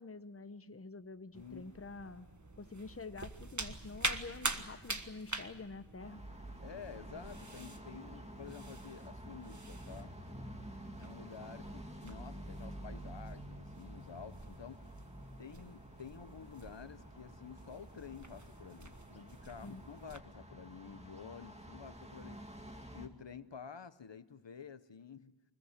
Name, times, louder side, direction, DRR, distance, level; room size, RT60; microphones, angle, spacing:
voice 1, 0.0-2.3 2.6-6.2 19.6-19.8, left 3 dB, 30° left, 11 dB, 0.9 m, -47 dB
sound 1, 1.3-20.2, right 2 dB, 40° right, 1.5 m, -46 dB
voice 2, 1.4-1.7 6.6-10.1 11.0-14.8 15.4-22.4 22.9-25.3, left 6 dB, 80° left, 13 dB, 0.9 m, -50 dB
sound 2, 6.0-23.1, equal, 15° right, 2.3 m, -50 dB
25.0 x 21.0 x 8.1 m, 1.1 s
wide cardioid pair, 40°, 43 cm